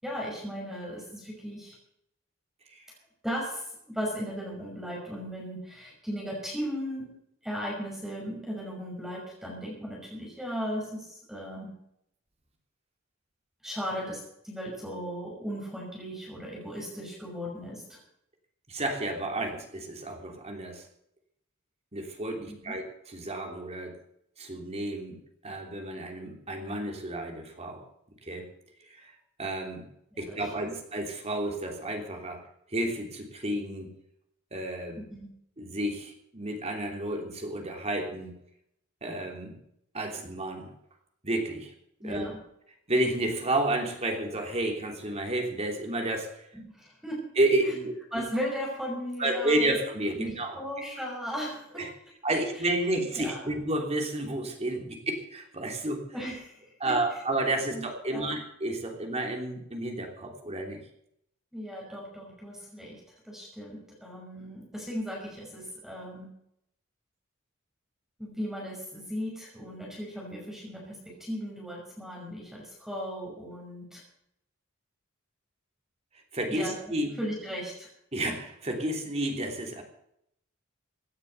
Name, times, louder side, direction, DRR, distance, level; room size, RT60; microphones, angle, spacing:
voice 1, 0.0-1.8 3.2-7.1 7.4-11.7 13.6-14.2 14.4-18.0 22.4-22.8 30.1-30.4 30.7-30.8 35.0-35.3 42.0-42.4 46.5-47.2 48.1-49.7 50.2-51.9 52.3-52.4 53.1-53.5 56.1-56.5 56.8-56.9 57.7-58.3 61.5-63.0 63.2-66.3 68.2-74.0 76.5-76.7 77.2-77.9, equal, ahead, -3 dB, 5.8 m, -37 dB
voice 2, 18.7-20.8 21.9-24.0 24.4-25.2 25.4-27.8 28.2-28.5 28.8-29.1 29.4-29.9 30.2-32.4 32.7-33.9 34.5-35.1 35.6-38.3 39.0-39.6 39.9-40.7 41.2-41.7 42.0-42.3 42.9-46.5 47.3-48.0 49.2-50.6 51.7-51.9 52.2-56.0 56.8-60.8 76.3-77.1 78.1-79.8, right 1 dB, 30° right, 3 dB, 3.1 m, -31 dB
17.0 x 9.7 x 6.7 m, 0.74 s
head